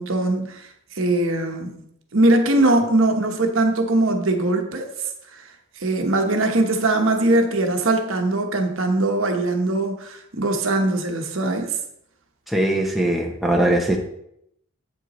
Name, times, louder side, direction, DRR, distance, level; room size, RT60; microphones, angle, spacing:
voice 1, 0.0-1.8 2.1-4.9 5.3-5.5 5.8-11.8, right 2 dB, 75° right, 5 dB, 1.0 m, -21 dB
voice 2, 12.5-14.0, right 1 dB, ahead, 0 dB, 0.7 m, -20 dB
8.0 x 7.7 x 3.0 m, 0.75 s
head